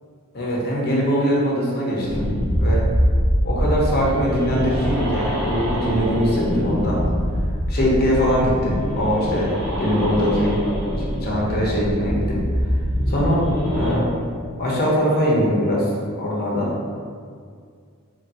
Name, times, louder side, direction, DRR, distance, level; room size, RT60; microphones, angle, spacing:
voice 1, 0.3-2.3 2.6-2.8 3.4-7.0 7.7-9.5 9.8-10.6 11.2-12.4 13.1-13.4 13.7-14.1 14.6-15.9 16.1-16.8, equal, 45° left, -4 dB, 0.8 m, -21 dB
sound 1, 2.0-13.9, equal, 15° right, 0.8 m, -24 dB
4.2 x 3.2 x 2.7 m, 2.1 s
head